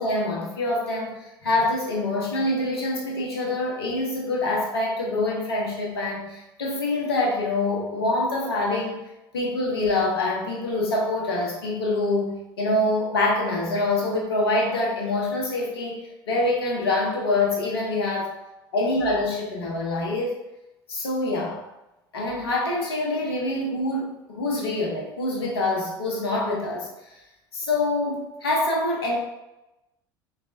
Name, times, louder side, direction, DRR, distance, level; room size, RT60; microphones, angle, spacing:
voice 1, 0.0-9.0 9.3-16.0 16.3-18.3 18.7-20.3 20.9-21.6 22.1-26.9 27.5-29.2, left 2 dB, 80° left, -2 dB, 1.0 m, -25 dB
4.5 x 3.2 x 2.7 m, 0.96 s
figure-of-eight pair, 65°, 13 cm